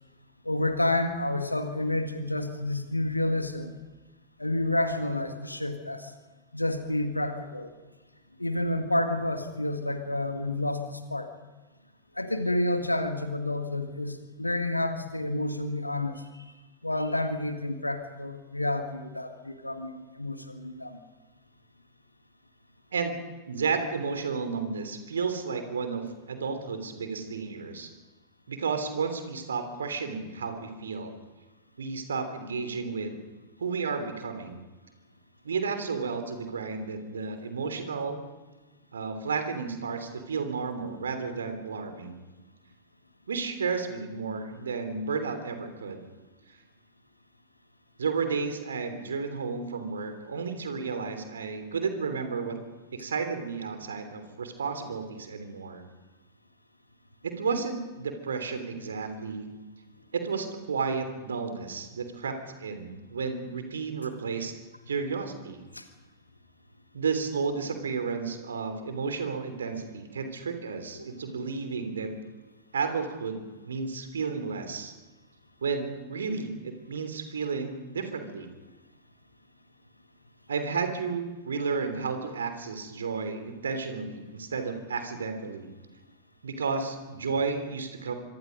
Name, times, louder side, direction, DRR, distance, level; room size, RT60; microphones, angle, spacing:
voice 1, 0.5-3.7 4.4-6.1 6.5-7.7 8.4-11.3 12.2-16.5 16.8-21.0 65.7-65.8 70.9-71.3 87.4-87.6, left 1 dB, 85° left, 7 dB, 1.8 m, -30 dB
voice 2, 23.5-27.9 28.5-31.1 31.8-33.2 33.6-34.6 35.4-38.2 38.9-42.2 43.3-46.0 48.0-52.6 52.9-55.8 57.2-59.5 60.1-64.5 64.9-65.6 66.9-72.1 72.7-74.9 75.6-78.5 80.5-85.7 86.4-88.1, right 5 dB, 70° right, 8 dB, 3.2 m, -32 dB
25.5 x 24.5 x 5.3 m, 1.2 s
figure-of-eight pair, 90°, 0 cm